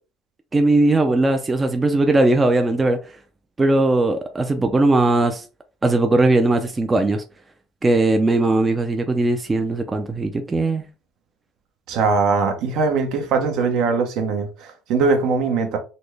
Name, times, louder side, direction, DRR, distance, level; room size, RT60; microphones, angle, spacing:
voice 1, 0.5-3.0 3.6-5.4 5.8-7.2 7.8-10.8, right 2 dB, 20° right, 0.4 m, -19 dB
voice 2, 11.9-15.8, right 4 dB, 70° right, 0.9 m, -21 dB
4.1 x 2.2 x 3.2 m
cardioid pair, 125°, 0 cm